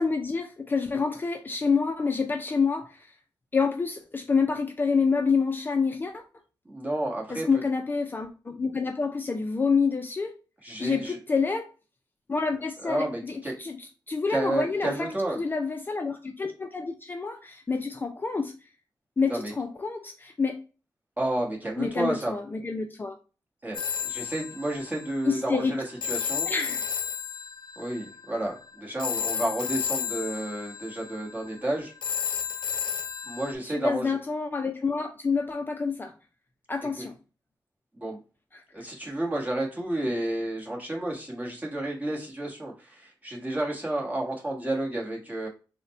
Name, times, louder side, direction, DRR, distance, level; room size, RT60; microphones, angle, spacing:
voice 1, 0.0-3.1 3.5-6.2 7.3-10.4 10.8-11.7 12.3-13.8 14.1-18.5 19.2-20.6 21.8-23.2 25.3-25.7 26.5-26.8 33.6-36.1 36.7-37.2 38.5-38.6, left 5 dB, 25° left, 5 dB, 0.4 m, -27 dB
voice 2, 6.6-7.5 10.6-11.2 12.8-13.6 14.3-15.4 19.3-19.5 21.2-22.4 23.6-26.5 27.8-31.9 33.2-34.2 37.0-37.1 37.9-38.2 38.7-45.5, right 1 dB, 20° right, -1 dB, 1.2 m, -31 dB
Telephone, 23.7-33.5, left 7 dB, 85° left, 0.5 m, -33 dB
4.0 x 2.1 x 4.1 m, 0.34 s
wide cardioid pair, 120°, 8 cm